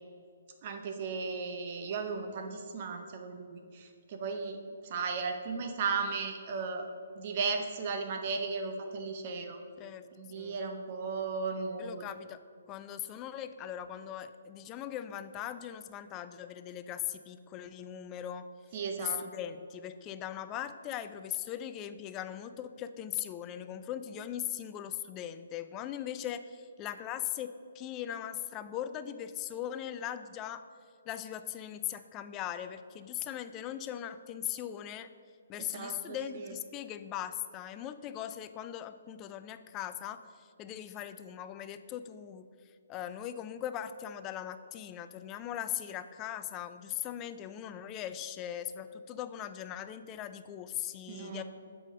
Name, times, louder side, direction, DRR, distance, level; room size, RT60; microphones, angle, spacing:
voice 1, 0.6-6.9 7.2-9.6 10.1-12.0 18.7-19.2 35.6-36.4 51.1-51.4, right 4 dB, 40° right, 5 dB, 0.6 m, -36 dB
voice 2, 11.8-12.4 12.7-18.5 19.0-27.5 27.7-30.6 31.1-35.1 35.5-42.5 42.9-51.4, left 11 dB, 20° left, 11 dB, 0.3 m, -39 dB
7.4 x 5.0 x 5.1 m, 2.3 s
figure-of-eight pair, 130°, 0 cm